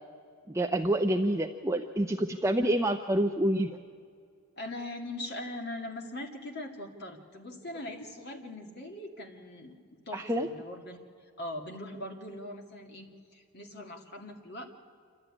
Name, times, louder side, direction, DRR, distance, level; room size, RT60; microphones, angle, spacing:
voice 1, 0.5-3.8 10.1-10.5, right 1 dB, 15° right, 4 dB, 0.5 m, -27 dB
voice 2, 4.6-9.8 10.1-11.0 11.4-14.7, left 1 dB, 45° left, 2 dB, 2.4 m, -41 dB
26.5 x 13.0 x 9.8 m, 2.3 s
head